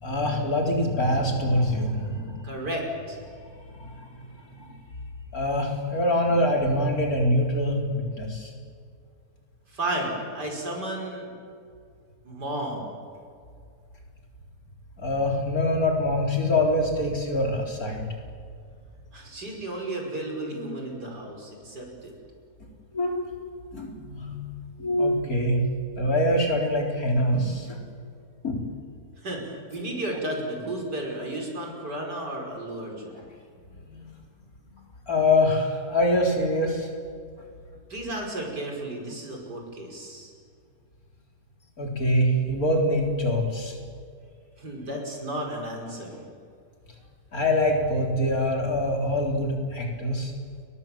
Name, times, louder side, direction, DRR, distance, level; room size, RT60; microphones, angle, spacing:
voice 1, 0.0-2.5 3.7-4.1 4.5-4.8 5.3-8.5 15.0-18.0 22.9-23.2 23.7-24.4 24.8-25.6 26.0-27.8 28.4-28.6 33.1-33.2 33.9-34.1 35.1-36.9 41.8-43.7 47.3-50.3, left 1 dB, 55° left, 0 dB, 4.6 m, -24 dB
voice 2, 2.4-3.2 9.7-11.3 12.2-12.9 19.1-22.1 29.2-33.2 37.9-40.3 44.6-46.2, right 1 dB, 75° right, 1 dB, 6.1 m, -33 dB
30.0 x 22.5 x 7.5 m, 2.2 s
omnidirectional pair, 1.8 m